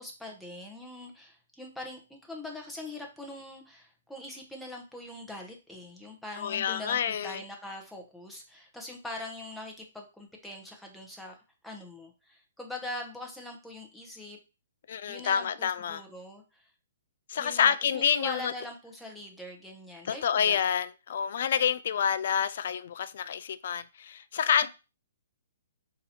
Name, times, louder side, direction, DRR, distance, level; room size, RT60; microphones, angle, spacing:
voice 1, 0.0-11.4 11.6-14.4 15.1-16.7 17.3-20.6 24.6-24.7, left 1 dB, ahead, 0.8 m, -42 dB
voice 2, 6.4-7.4 14.9-16.0 17.3-18.5 20.0-24.7, left 8 dB, 50° left, 0.3 m, -28 dB
3.9 x 2.8 x 4.2 m
hypercardioid pair, 165°, 0 cm